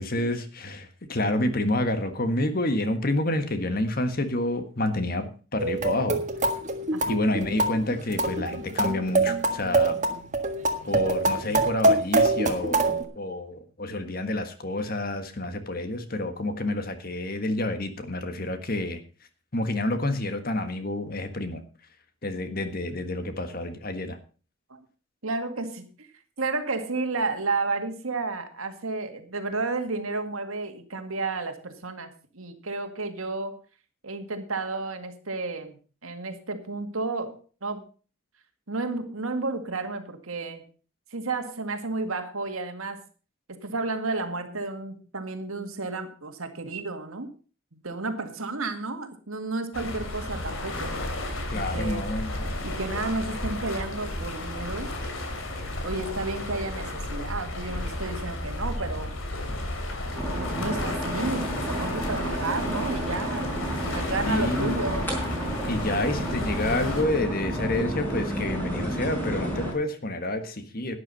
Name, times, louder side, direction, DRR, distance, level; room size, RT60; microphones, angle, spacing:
voice 1, 0.0-5.3 5.5-6.2 7.1-10.0 10.8-19.0 19.5-21.6 22.2-24.2 51.5-52.3 64.2-64.8 65.7-71.0, left 1 dB, 45° left, 9 dB, 1.6 m, -28 dB
sound 1, 5.6-13.0, right 2 dB, 35° right, 1.6 m, -24 dB
voice 2, 25.2-25.9 26.4-33.6 34.0-35.8 36.0-37.8 38.7-40.7 41.1-43.0 43.5-47.3 47.7-51.0 51.5-52.1 52.6-54.9 55.8-59.1 60.4-63.5 63.9-65.1, right 3 dB, 85° right, 7 dB, 2.0 m, -32 dB
sound 2, 49.7-67.0, left 1 dB, 75° left, 3.0 m, -33 dB
sound 3, 60.1-69.7, right 1 dB, 10° left, 4.3 m, -31 dB
12.0 x 9.9 x 5.4 m, 0.37 s
head